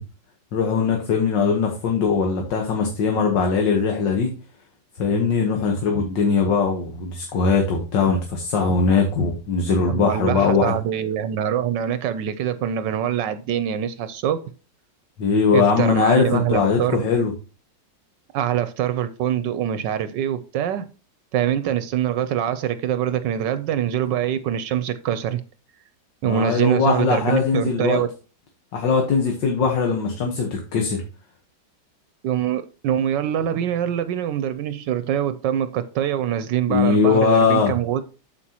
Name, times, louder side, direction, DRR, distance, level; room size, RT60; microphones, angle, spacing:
voice 1, 0.5-4.3 5.0-10.7 15.2-17.3 26.2-28.0 28.7-31.0 36.7-37.7, left 5 dB, 75° left, 1.9 m, -20 dB
voice 2, 9.9-14.4 15.5-17.0 18.3-20.9 21.3-25.4 26.2-28.1 32.2-38.1, right 10 dB, 75° right, 1.2 m, -24 dB
8.6 x 7.2 x 2.9 m
omnidirectional pair, 2.0 m